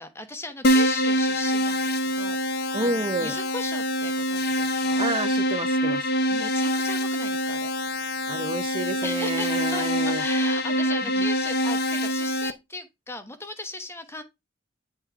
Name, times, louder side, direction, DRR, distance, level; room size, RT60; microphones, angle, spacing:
voice 1, 0.0-5.1 6.3-7.7 9.0-14.2, left 2 dB, 10° left, 1.0 m, -37 dB
Keyboard (musical), 0.6-12.5, equal, 50° left, 0.7 m, -25 dB
voice 2, 2.7-3.4 5.0-6.1 8.3-10.2 11.0-11.1, right 2 dB, 25° right, 0.5 m, -29 dB
9.7 x 3.6 x 4.5 m
head